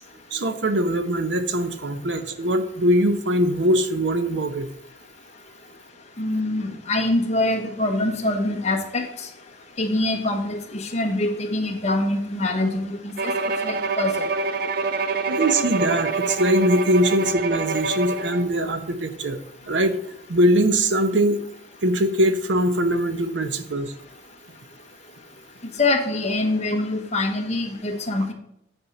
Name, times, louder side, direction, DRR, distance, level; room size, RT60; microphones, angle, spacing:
voice 1, 0.3-4.7 15.3-19.4 19.7-20.0 20.3-21.4 21.8-23.9, right 1 dB, 80° right, 9 dB, 0.9 m, -22 dB
voice 2, 6.2-9.1 9.8-13.3 13.6-14.3 25.8-28.3, left 2 dB, 35° left, 3 dB, 1.2 m, -24 dB
Bowed string instrument, 13.2-18.5, right 3 dB, 55° right, 0.5 m, -26 dB
8.9 x 4.3 x 5.3 m, 0.78 s
head